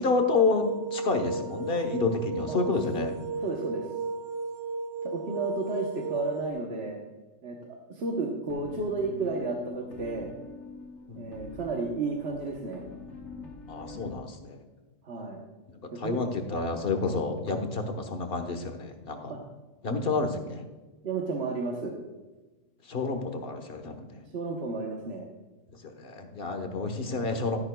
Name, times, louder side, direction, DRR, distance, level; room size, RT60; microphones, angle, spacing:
voice 1, 0.0-3.2 11.1-11.3 13.7-14.6 16.0-19.3 19.8-20.7 22.9-24.2 25.8-27.6, left 3 dB, 50° left, 5 dB, 1.3 m, -29 dB
sound 1, 0.6-6.5, right 4 dB, 20° right, 1.0 m, -35 dB
voice 2, 3.4-3.9 5.0-7.0 7.4-10.3 11.1-12.9 15.0-15.4 15.9-16.2 19.3-19.4 21.0-22.0 24.3-25.3, right 3 dB, 55° right, 0 dB, 1.2 m, -32 dB
sound 2, 8.5-14.1, left 3 dB, 65° left, 1.5 m, -44 dB
12.5 x 10.5 x 2.3 m, 1.2 s
omnidirectional pair, 1.3 m